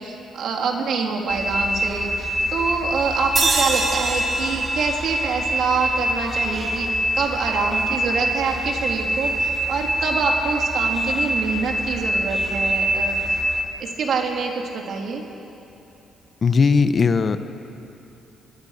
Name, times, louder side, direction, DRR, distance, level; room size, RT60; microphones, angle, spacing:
voice 1, 0.0-13.4 13.8-15.2, right 5 dB, 65° right, 1 dB, 3.3 m, -26 dB
sound 1, 1.3-13.6, right 1 dB, 15° right, 3.2 m, -25 dB
sound 2, 3.4-6.6, right 3 dB, 40° right, 2.9 m, -26 dB
voice 2, 16.4-17.4, left 5 dB, 45° left, 10 dB, 1.0 m, -17 dB
23.5 x 21.0 x 6.6 m, 2.9 s
cardioid pair, 90°, 0 cm